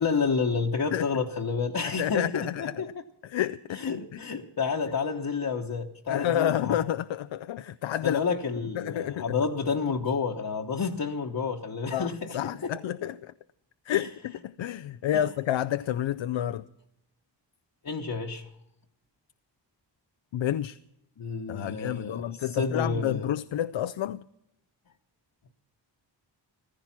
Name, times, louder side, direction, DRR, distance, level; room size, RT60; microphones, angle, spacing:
voice 1, 0.0-2.9 3.7-6.8 8.0-12.4 12.6-12.7 13.9-14.1 15.1-15.2 17.8-18.5 21.2-23.3, left 5 dB, 50° left, 1.1 m, -30 dB
voice 2, 2.0-2.8 3.2-4.2 6.1-8.2 8.7-9.2 11.9-13.3 13.9-16.6 20.3-20.8 21.5-24.2, left 11 dB, 90° left, 0.5 m, -29 dB
15.0 x 14.5 x 5.9 m
wide cardioid pair, 80°, 45 cm